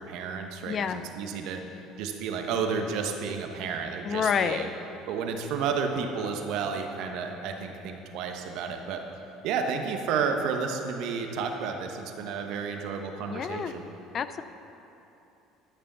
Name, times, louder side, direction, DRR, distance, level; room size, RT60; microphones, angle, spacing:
voice 1, 0.0-4.7 5.1-9.0 9.4-13.8, right 5 dB, 70° right, 4 dB, 1.1 m, -31 dB
voice 2, 0.7-1.0 4.0-4.7 13.3-13.7 14.1-14.4, left 7 dB, 45° left, 12 dB, 0.5 m, -28 dB
12.0 x 6.8 x 6.8 m, 2.9 s
hypercardioid pair, 70°, 0 cm